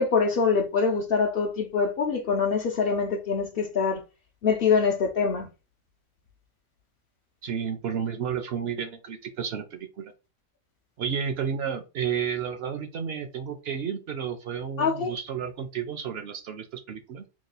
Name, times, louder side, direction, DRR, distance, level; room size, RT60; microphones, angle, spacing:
voice 1, 0.0-4.0 4.4-5.5 14.8-15.1, left 5 dB, 60° left, 0.7 m, -24 dB
voice 2, 7.4-10.1 11.0-17.3, right 7 dB, 65° right, 0.7 m, -32 dB
3.0 x 2.3 x 3.8 m
omnidirectional pair, 1.3 m